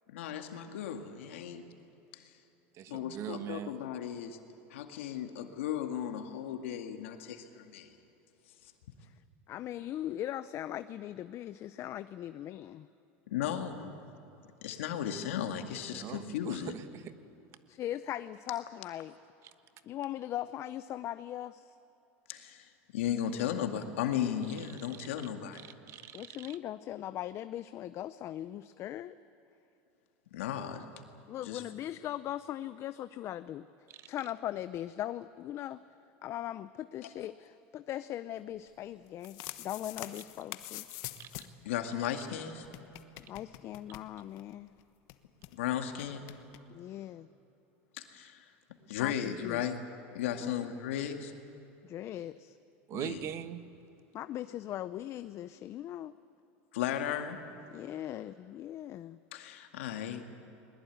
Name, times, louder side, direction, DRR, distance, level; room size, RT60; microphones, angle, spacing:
voice 1, 0.1-1.6 2.9-4.4 4.7-7.9 13.3-13.9 14.6-16.8 22.3-25.6 30.3-30.9 31.4-31.6 41.6-42.7 45.5-46.2 47.9-48.4 48.9-49.8 50.1-51.3 52.9-53.2 56.7-57.4 59.3-60.2, left 9 dB, 85° left, 5 dB, 2.1 m, -35 dB
voice 2, 2.8-3.7 15.9-17.1 24.9-25.1 25.6-26.4 40.1-40.2 41.2-41.3 52.9-53.6, right 10 dB, 45° right, 11 dB, 1.3 m, -41 dB
voice 3, 9.5-12.9 17.7-19.1 19.8-21.8 26.1-29.1 31.3-33.7 34.1-35.8 36.2-40.9 43.3-44.7 46.7-47.3 48.8-49.6 50.4-50.7 51.8-52.6 54.1-56.1 57.7-59.2, left 12 dB, 45° left, 13 dB, 0.6 m, -39 dB
sound 1, 39.0-41.6 41.9-42.0 42.2-42.3 42.6-44.5 44.8-44.9 45.1-45.5 46.0-46.6, left 16 dB, 65° left, 1.2 m, -45 dB
21.0 x 20.5 x 9.4 m, 3.0 s
supercardioid pair, 115°, 7 cm